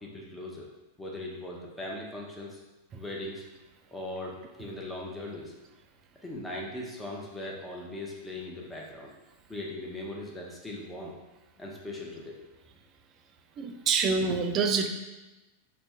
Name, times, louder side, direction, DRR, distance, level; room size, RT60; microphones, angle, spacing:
voice 1, 0.0-0.7 1.0-2.6 2.9-3.5 3.9-5.5 6.2-9.1 9.5-11.2 11.6-12.4, left 1 dB, 10° left, -2 dB, 0.8 m, -39 dB
voice 2, 13.6-14.9, right 5 dB, 30° right, 4 dB, 0.4 m, -26 dB
4.3 x 2.3 x 4.3 m, 1.1 s
figure-of-eight pair, 90°, 0 cm